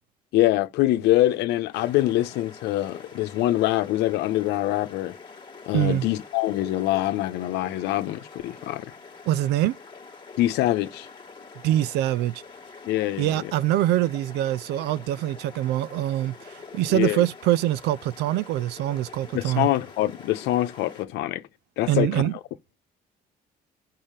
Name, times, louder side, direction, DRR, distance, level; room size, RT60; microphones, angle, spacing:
voice 1, 0.3-5.2 5.7-8.9 10.4-11.1 12.9-13.5 16.9-17.3 19.3-21.4 21.8-22.3, left 15 dB, 85° left, 0.9 m, -24 dB
sound 1, 1.7-21.1, left 4 dB, 25° left, 1.5 m, -45 dB
voice 2, 5.7-6.1 9.3-9.8 11.6-12.4 13.2-16.3 16.7-19.7 21.9-22.3, right 13 dB, 85° right, 0.5 m, -24 dB
5.7 x 5.6 x 6.7 m
cardioid pair, 110°, 17 cm